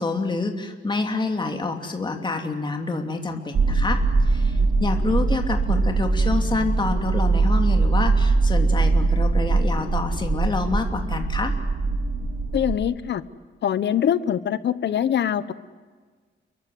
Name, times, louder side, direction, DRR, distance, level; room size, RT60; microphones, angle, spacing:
voice 1, 0.0-11.5, left 3 dB, 25° left, 4 dB, 2.9 m, -27 dB
sound 1, 3.5-12.7, right 3 dB, 60° right, 4.2 m, -21 dB
voice 2, 12.5-13.2 13.6-15.5, left 9 dB, 60° left, 15 dB, 1.2 m, -23 dB
30.0 x 23.0 x 8.0 m, 1.5 s
wide cardioid pair, 145°, 20 cm